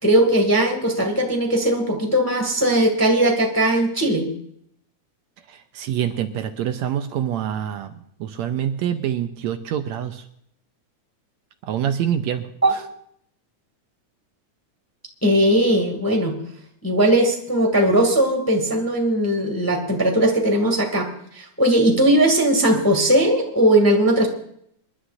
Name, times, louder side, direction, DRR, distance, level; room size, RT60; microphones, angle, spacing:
voice 1, 0.0-4.3 12.6-12.7 15.2-16.3 16.8-21.1 21.3-24.3, right 1 dB, 5° left, 2 dB, 1.5 m, -18 dB
voice 2, 5.5-7.9 8.2-10.2 11.7-12.4 12.7-12.8, right 9 dB, 75° right, 7 dB, 1.9 m, -26 dB
27.5 x 11.5 x 2.6 m, 0.68 s
omnidirectional pair, 3.4 m